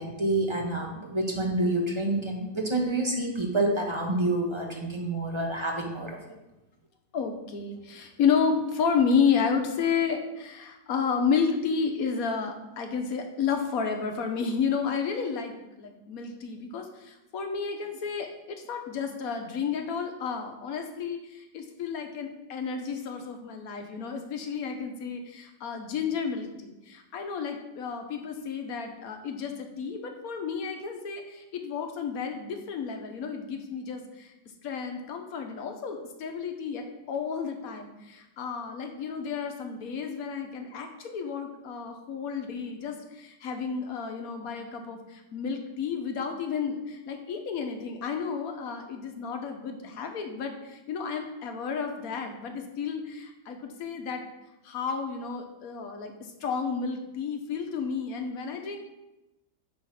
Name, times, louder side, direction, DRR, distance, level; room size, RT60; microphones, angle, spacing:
voice 1, 0.0-6.2, right 2 dB, 25° right, 0 dB, 0.6 m, -28 dB
voice 2, 7.1-34.3 34.6-54.2 54.6-56.1 56.4-58.8, left 6 dB, 60° left, 4 dB, 1.2 m, -31 dB
8.8 x 3.1 x 5.7 m, 0.97 s
omnidirectional pair, 1.9 m